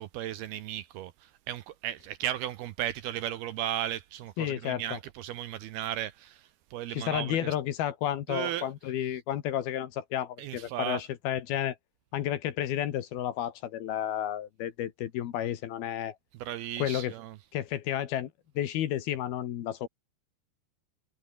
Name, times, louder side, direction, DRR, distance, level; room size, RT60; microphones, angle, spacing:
voice 1, 0.0-7.5 8.3-8.7 10.4-11.0 16.3-17.4, right 12 dB, 75° right, 2.5 m, -35 dB
voice 2, 4.4-5.0 6.9-11.8 12.1-16.2 16.8-17.1 17.5-18.3 18.6-19.9, left 11 dB, 65° left, 3.1 m, -31 dB
omnidirectional pair, 5.2 m